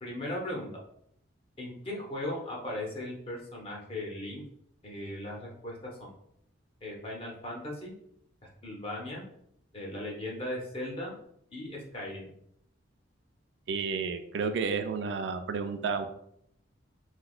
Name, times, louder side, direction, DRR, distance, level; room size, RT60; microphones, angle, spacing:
voice 1, 0.0-0.7 1.6-4.4 4.8-6.1 6.8-7.9 8.6-9.2 9.7-11.1 11.5-12.3, left 1 dB, 30° left, -2 dB, 0.7 m, -37 dB
voice 2, 13.7-16.1, right 5 dB, 65° right, 8 dB, 0.3 m, -31 dB
3.3 x 2.8 x 2.4 m, 0.71 s
head